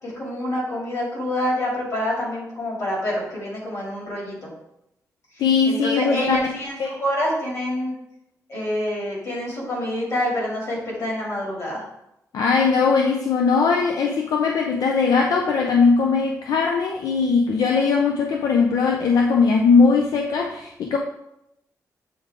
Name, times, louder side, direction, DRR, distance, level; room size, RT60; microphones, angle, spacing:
voice 1, 0.0-4.5 5.7-7.9 8.5-11.8, left 1 dB, 50° left, -4 dB, 2.3 m, -27 dB
voice 2, 5.4-6.5 6.8-7.0 12.3-21.0, left 5 dB, 80° left, 2 dB, 0.5 m, -19 dB
7.6 x 3.7 x 3.5 m, 0.83 s
wide cardioid pair, 170°, 6 cm